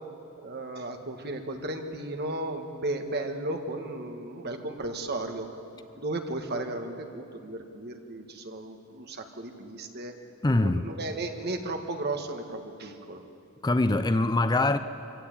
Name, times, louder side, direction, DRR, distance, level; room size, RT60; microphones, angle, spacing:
voice 1, 0.4-5.5 5.7-10.1 10.6-13.2, right 2 dB, 50° right, 1.8 m, -35 dB
voice 2, 10.4-10.8 13.6-14.8, left 2 dB, 20° left, 0.5 m, -23 dB
24.5 x 15.5 x 8.8 m
head